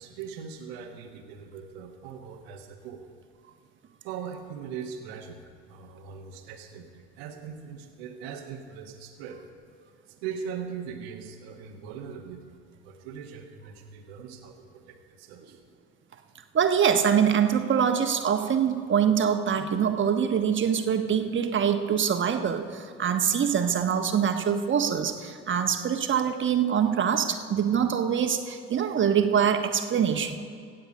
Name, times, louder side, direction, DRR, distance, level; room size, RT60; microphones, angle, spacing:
voice 1, 0.0-3.0 4.0-5.4 5.7-9.4 10.1-15.6, right 7 dB, 75° right, 4 dB, 1.4 m, -40 dB
voice 2, 16.5-30.4, right 8 dB, 40° right, 6 dB, 1.3 m, -24 dB
16.5 x 8.0 x 5.3 m, 2.3 s
hypercardioid pair, 70°, 31 cm